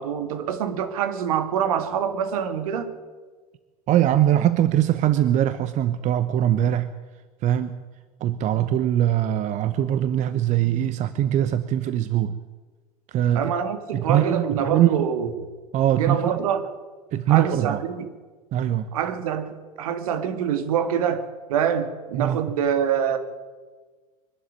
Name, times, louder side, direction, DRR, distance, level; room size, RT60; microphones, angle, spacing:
voice 1, 0.0-2.9 13.4-15.3 15.9-16.7 17.3-18.1 18.9-23.2, right 8 dB, 65° right, 9 dB, 2.2 m, -25 dB
voice 2, 3.9-6.9 7.4-7.8 8.2-12.4 13.1-13.5 13.9-15.1 15.7-16.3 17.1-17.8 18.5-18.9 22.1-22.4, right 11 dB, 40° right, 13 dB, 0.9 m, -22 dB
23.5 x 12.5 x 9.4 m, 1.3 s
figure-of-eight pair, 80°, 20 cm